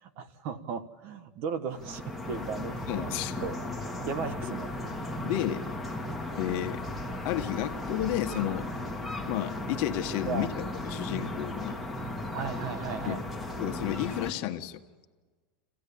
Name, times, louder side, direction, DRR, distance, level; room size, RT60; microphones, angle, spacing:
voice 1, 0.0-3.1 3.4-3.5 4.0-4.8 10.2-10.5 12.3-13.2, right 6 dB, 55° right, 13 dB, 1.3 m, -36 dB
sound 1, 1.7-14.3, left 1 dB, 5° right, 2.0 m, -36 dB
voice 2, 2.9-3.4 5.2-5.6 6.4-6.8 7.2-8.7 9.3-11.8 13.0-13.1 13.6-14.8, left 13 dB, 55° left, 7 dB, 1.3 m, -32 dB
27.5 x 15.5 x 8.5 m, 1.4 s
supercardioid pair, 135°, 5 cm